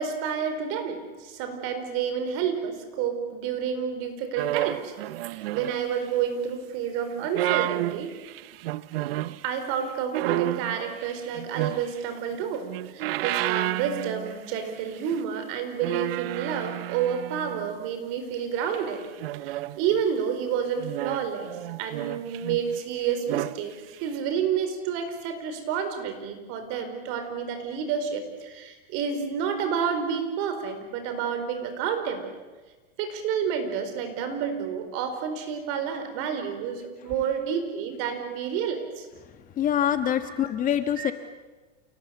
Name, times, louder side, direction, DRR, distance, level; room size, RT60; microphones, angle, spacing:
voice 1, 0.0-4.9 5.2-8.1 9.4-19.0 19.4-21.5 21.8-32.3 33.0-39.1 40.2-40.5 41.0-41.1, right 7 dB, 50° right, 7 dB, 4.7 m, -30 dB
sound 1, 4.4-6.1 7.1-9.4 10.1-12.2 12.6-14.7 15.0-15.2 15.8-17.9 18.7-20.0 20.8-22.8 23.1-23.6 24.1-24.2, right 16 dB, 70° right, 0.7 m, -31 dB
voice 2, 39.6-41.1, left 10 dB, 25° left, 9 dB, 1.3 m, -25 dB
28.5 x 18.5 x 8.3 m, 1.3 s
supercardioid pair, 140°, 30 cm